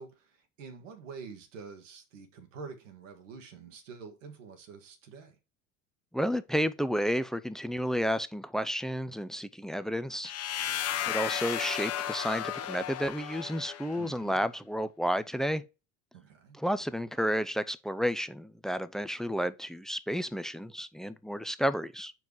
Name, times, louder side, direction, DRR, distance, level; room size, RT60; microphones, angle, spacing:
voice 1, 0.0-5.4 14.0-14.4 16.1-16.6, right 5 dB, 85° right, 1.6 m, -47 dB
voice 2, 6.1-10.3 10.6-10.7 11.1-15.6 16.6-22.1, equal, ahead, 0.4 m, -31 dB
sound 1, 10.2-14.1, left 10 dB, 40° left, 0.9 m, -34 dB
4.6 x 4.6 x 5.3 m
hypercardioid pair, 85°, 36 cm